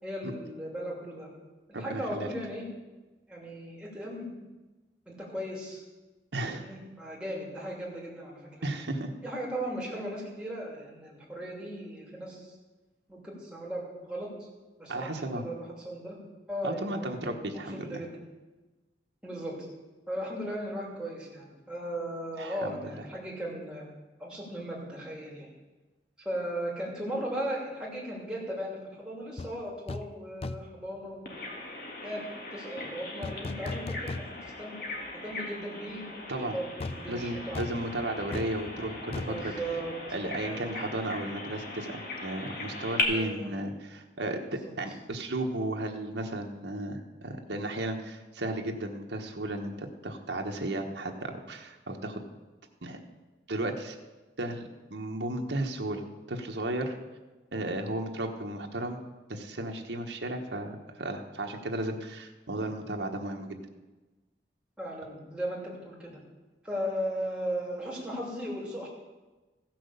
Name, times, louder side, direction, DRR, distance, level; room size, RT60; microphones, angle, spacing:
voice 1, 0.0-1.3 1.8-2.6 3.3-4.3 5.1-5.8 6.5-8.7 9.2-12.5 13.1-14.3 14.8-16.2 16.5-18.2 19.2-19.7 20.1-23.9 24.2-25.5 26.2-31.3 32.0-32.2 32.5-34.8 35.1-37.8 39.2-40.0 40.4-41.1 43.1-43.5 44.5-44.7 64.8-66.2 66.6-68.9, equal, 5° right, -4 dB, 2.8 m, -37 dB
voice 2, 1.7-2.3 6.3-6.7 8.6-9.1 14.9-15.4 16.6-18.0 22.4-22.8 36.3-36.6 37.1-39.5 40.1-52.2 52.8-53.0 53.5-54.0 54.4-56.0 56.3-57.0 57.5-59.0 59.3-63.6, right 1 dB, 85° right, 2 dB, 1.2 m, -34 dB
sound 1, 29.4-29.5 29.9-30.1 30.4-30.8 33.2-34.7 35.0-35.1 36.8-40.5 40.7-40.9, left 2 dB, 35° left, 0.3 m, -38 dB
Bird vocalization bird call bird song, 31.3-43.0, left 3 dB, 50° left, 1.8 m, -39 dB
15.0 x 6.1 x 6.8 m, 1.2 s
head